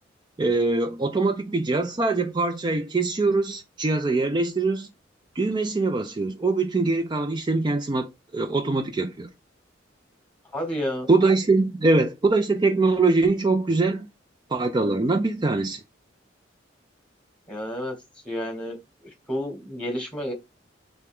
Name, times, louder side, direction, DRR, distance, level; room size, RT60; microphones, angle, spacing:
voice 1, 0.4-4.9 5.4-9.3 11.1-14.1 14.5-15.8, right 3 dB, 25° right, 0.4 m, -23 dB
voice 2, 10.5-11.1 17.5-17.9 18.2-20.3, equal, 5° left, 1.1 m, -31 dB
3.5 x 3.3 x 3.5 m
head